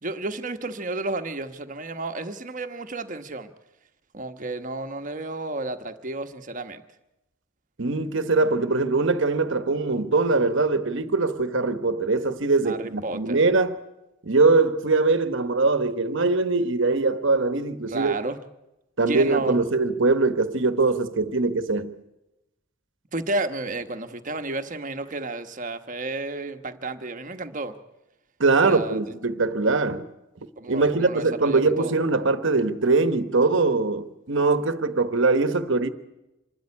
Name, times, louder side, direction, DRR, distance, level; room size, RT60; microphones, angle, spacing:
voice 1, 0.0-3.5 4.1-6.8 12.6-13.4 17.9-18.4 19.1-19.6 23.1-27.8 28.6-29.0 30.6-32.0, right 2 dB, 40° right, 1.2 m, -32 dB
voice 2, 7.8-13.8 14.2-18.1 19.0-22.0 28.4-30.1 30.7-35.9, right 3 dB, 60° right, 1.1 m, -22 dB
26.0 x 13.0 x 9.8 m
head